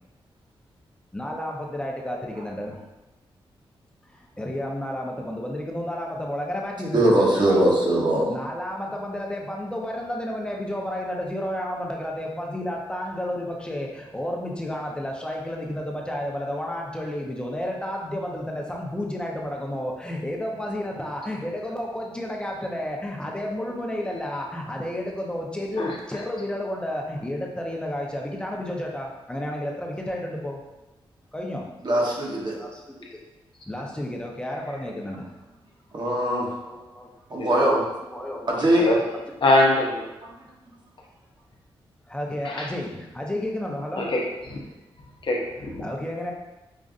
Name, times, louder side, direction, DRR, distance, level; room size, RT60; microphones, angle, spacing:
voice 1, 1.1-2.8 4.4-30.6 31.3-31.7 32.5-33.2 33.7-35.3 36.6-37.1 38.1-38.5 42.1-44.1 45.8-46.3, left 1 dB, 10° left, -1 dB, 0.7 m, -31 dB
voice 2, 6.9-8.3 31.8-32.5 35.9-36.5 37.3-37.8 38.5-38.9, right 1 dB, 50° right, -3 dB, 1.0 m, -21 dB
voice 3, 39.4-40.1 42.4-42.7 44.0-44.2 44.5-44.6 45.2-45.8, left 2 dB, 55° left, -1 dB, 0.8 m, -22 dB
5.2 x 2.4 x 2.5 m, 1.0 s
cardioid pair, 70°, 10 cm